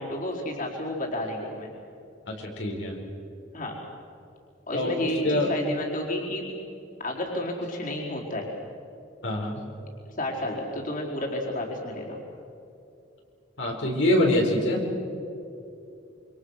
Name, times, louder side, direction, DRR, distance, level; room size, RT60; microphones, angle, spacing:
voice 1, 0.0-1.7 3.5-3.8 4.7-6.5 7.0-8.5 10.2-12.2, left 1 dB, 45° left, -2 dB, 4.5 m, -31 dB
voice 2, 2.3-3.0 4.7-4.9 5.2-5.5 9.2-9.6 13.6-14.8, left 1 dB, 70° left, -1 dB, 4.5 m, -24 dB
28.0 x 26.0 x 6.5 m, 2.8 s
head